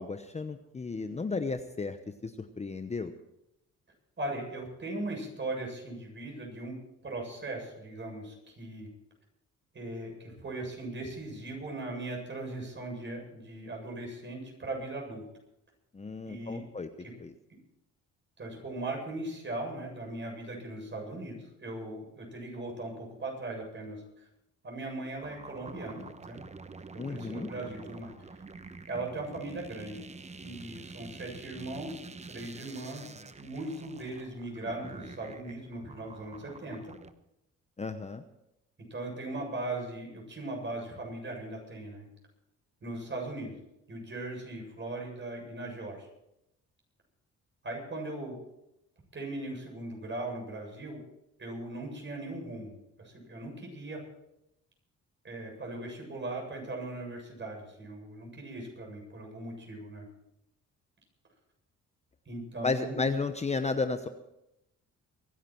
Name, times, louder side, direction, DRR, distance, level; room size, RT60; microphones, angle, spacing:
voice 1, 0.0-2.0 2.2-3.1 15.9-16.9 17.2-17.3 27.0-27.5 37.8-38.2 62.6-64.1, left 4 dB, 20° left, 9 dB, 0.9 m, -33 dB
voice 2, 4.2-6.7 7.0-8.9 9.7-15.2 16.3-16.6 17.0-17.1 18.4-24.3 24.6-26.4 26.9-28.1 28.9-30.0 30.4-32.0 32.3-33.1 33.4-37.0 38.9-42.1 42.8-43.6 43.9-46.1 47.6-48.4 49.1-51.0 51.4-54.0 55.2-60.1 62.3-63.1, right 2 dB, 40° right, 1 dB, 7.7 m, -39 dB
sound 1, 25.2-37.1, right 4 dB, 20° right, 1.0 m, -47 dB
23.5 x 11.0 x 4.6 m, 0.85 s
cardioid pair, 90°, 30 cm